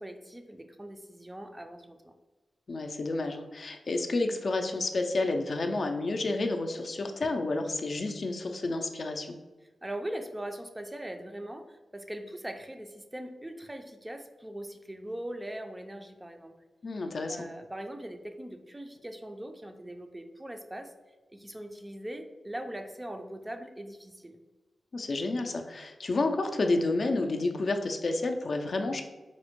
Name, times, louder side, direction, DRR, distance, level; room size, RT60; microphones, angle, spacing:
voice 1, 0.0-2.1 9.8-16.6 17.3-20.9 21.3-24.4, right 1 dB, 15° right, 5 dB, 0.3 m, -41 dB
voice 2, 2.7-9.3 16.8-17.5 24.9-29.0, left 2 dB, 55° left, 4 dB, 0.3 m, -30 dB
4.1 x 2.1 x 2.9 m, 1.2 s
cardioid pair, 65°, 0 cm